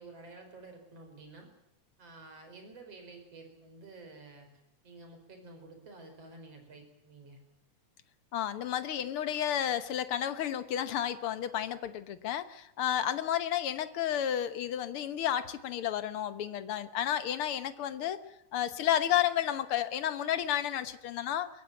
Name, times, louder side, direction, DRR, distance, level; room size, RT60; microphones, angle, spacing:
voice 1, 0.0-1.5 2.0-4.5 4.8-7.4, right 3 dB, 55° right, 5 dB, 5.6 m, -51 dB
voice 2, 8.3-18.2 18.5-21.5, left 10 dB, 60° left, 12 dB, 1.6 m, -31 dB
22.5 x 16.0 x 9.1 m, 0.84 s
omnidirectional pair, 3.4 m